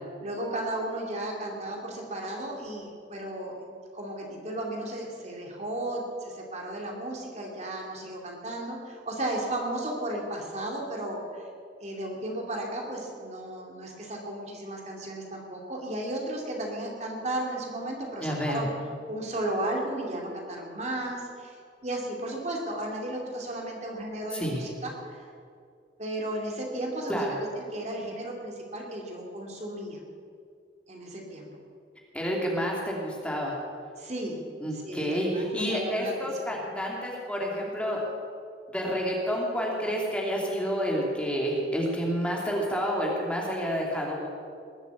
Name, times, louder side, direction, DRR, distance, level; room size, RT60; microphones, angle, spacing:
voice 1, 0.2-11.4 11.8-18.7 19.1-21.6 21.8-25.3 26.0-30.0 30.9-31.5 34.0-34.4 34.7-36.1, right 1 dB, 40° right, 0 dB, 2.6 m, -34 dB
voice 2, 18.2-18.6 24.3-24.6 27.1-27.3 32.1-33.5 34.6-38.0 38.7-44.3, equal, 5° left, -2 dB, 2.5 m, -29 dB
20.0 x 8.1 x 8.5 m, 2.3 s
head